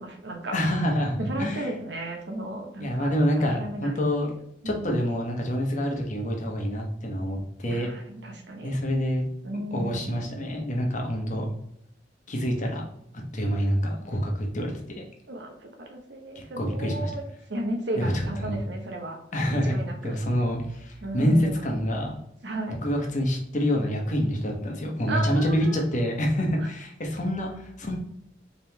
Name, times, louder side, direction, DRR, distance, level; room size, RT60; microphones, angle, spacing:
voice 1, 0.0-0.5 1.2-3.1 3.5-4.3 4.6-4.9 7.7-8.8 9.4-10.2 15.3-19.2 19.6-20.2 21.0-21.7 22.4-22.8 25.1-25.8, right 1 dB, 80° right, 3 dB, 1.0 m, -34 dB
voice 2, 0.5-1.7 2.8-4.3 4.6-7.9 8.6-9.3 9.7-11.5 12.3-12.8 13.3-15.0 16.3-17.1 18.0-18.6 19.3-19.8 20.0-22.2 22.8-28.0, equal, 45° left, 1 dB, 1.0 m, -27 dB
4.2 x 3.6 x 2.9 m, 0.75 s
head